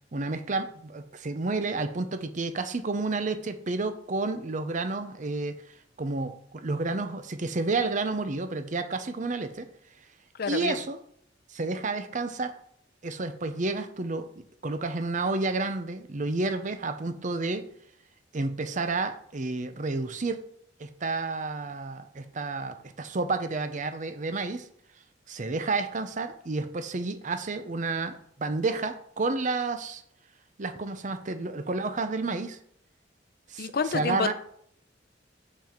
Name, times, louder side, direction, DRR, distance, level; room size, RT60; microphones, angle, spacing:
voice 1, 0.1-5.6 6.0-9.7 10.5-11.0 11.5-12.5 13.0-17.7 18.3-20.4 20.8-24.7 25.3-30.0 30.6-32.6 33.5-34.3, right 3 dB, 40° right, 9 dB, 0.7 m, -30 dB
voice 2, 10.4-10.8 33.6-34.3, left 5 dB, 55° left, 12 dB, 0.6 m, -29 dB
6.8 x 5.8 x 4.5 m, 0.67 s
head